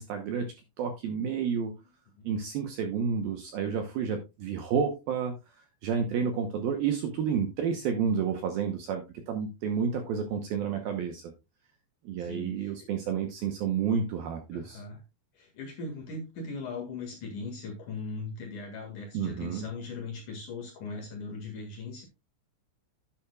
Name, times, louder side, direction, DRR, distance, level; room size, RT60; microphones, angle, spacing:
voice 1, 0.0-1.7 2.2-5.6 5.8-11.3 12.0-14.8 19.1-19.7, right 7 dB, 75° right, 5 dB, 2.2 m, -30 dB
voice 2, 12.2-12.9 14.5-15.0 15.3-22.0, left 3 dB, 55° left, 2 dB, 2.7 m, -39 dB
11.0 x 8.7 x 2.3 m, 0.25 s
omnidirectional pair, 5.5 m